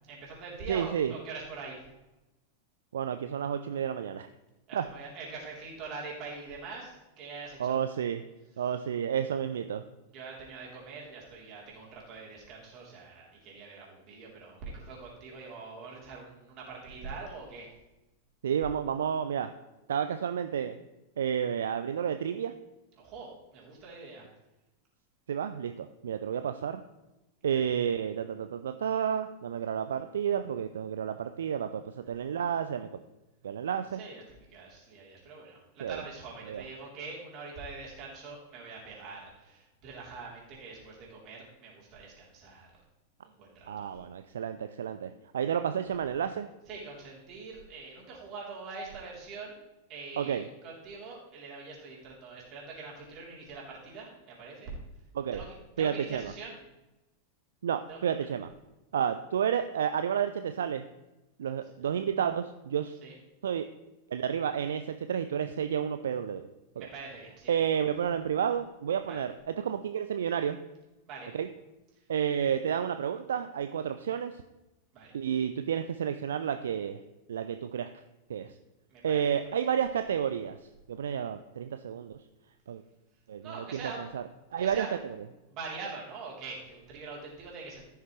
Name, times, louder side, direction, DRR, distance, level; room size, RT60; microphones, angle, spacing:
voice 1, 0.1-1.8 4.7-7.8 10.1-17.7 23.0-24.2 27.5-27.6 34.0-34.2 34.5-42.7 43.2-43.9 46.7-49.6 49.9-54.7 55.3-55.5 55.8-56.5 57.9-58.0 63.0-63.1 66.8-67.5 69.1-69.2 71.1-71.3 74.9-75.1 78.9-79.2 83.4-84.0 84.6-84.9 85.5-87.8, right 4 dB, 35° right, -3 dB, 3.4 m, -44 dB
voice 2, 0.7-1.1 2.9-4.3 4.7-4.9 7.6-8.2 8.6-9.8 18.4-19.5 19.9-20.8 21.2-22.5 25.3-26.8 27.4-32.9 33.4-34.0 35.8-36.0 36.4-36.6 43.7-46.5 50.2-50.5 55.1-55.4 55.8-56.3 57.6-58.5 58.9-60.8 61.4-63.0 63.4-63.7 64.1-66.5 66.8-66.9 67.5-70.6 71.3-71.5 72.1-74.4 75.1-77.0 77.3-77.9 78.3-78.5 79.0-80.6 80.9-82.2 82.7-82.8 83.3-84.2 84.5-85.2, right 8 dB, 65° right, 9 dB, 0.4 m, -31 dB
15.0 x 6.6 x 3.2 m, 1.0 s
figure-of-eight pair, 90°, 0 cm